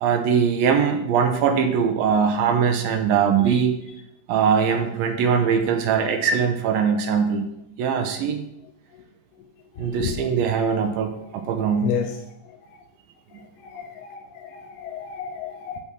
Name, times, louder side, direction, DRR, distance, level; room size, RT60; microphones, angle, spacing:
voice 1, 0.0-3.7 4.3-7.4 7.8-8.4 9.8-11.9, right 7 dB, 75° right, 6 dB, 2.3 m, -21 dB
voice 2, 11.8-12.2 13.6-15.8, left 7 dB, 80° left, 5 dB, 2.5 m, -31 dB
6.9 x 5.8 x 6.1 m, 0.80 s
omnidirectional pair, 4.6 m